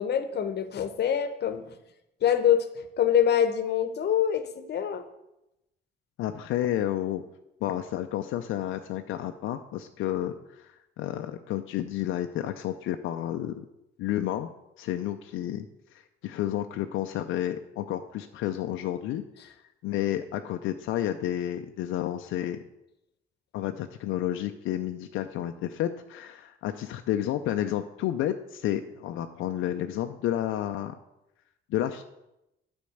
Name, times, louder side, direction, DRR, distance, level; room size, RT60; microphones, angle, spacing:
voice 1, 0.0-1.6 2.2-5.0, left 9 dB, 55° left, 10 dB, 0.9 m, -25 dB
voice 2, 6.2-7.2 7.6-13.6 14.0-14.5 14.8-15.7 15.9-19.5 19.8-22.6 23.5-30.9 31.7-32.0, left 12 dB, 85° left, 7 dB, 0.5 m, -31 dB
8.5 x 4.4 x 6.4 m, 0.89 s
cardioid pair, 90°, 20 cm